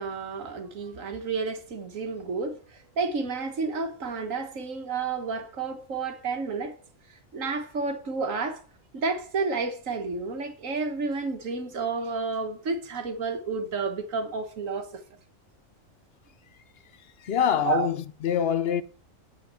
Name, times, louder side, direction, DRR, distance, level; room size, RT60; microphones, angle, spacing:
voice 1, 0.0-6.8 7.3-8.6 8.9-14.9 17.6-17.9, right 4 dB, 75° right, 1.7 m, -31 dB
voice 2, 17.2-18.8, left 9 dB, 55° left, 0.8 m, -25 dB
8.5 x 5.7 x 7.5 m
omnidirectional pair, 1.4 m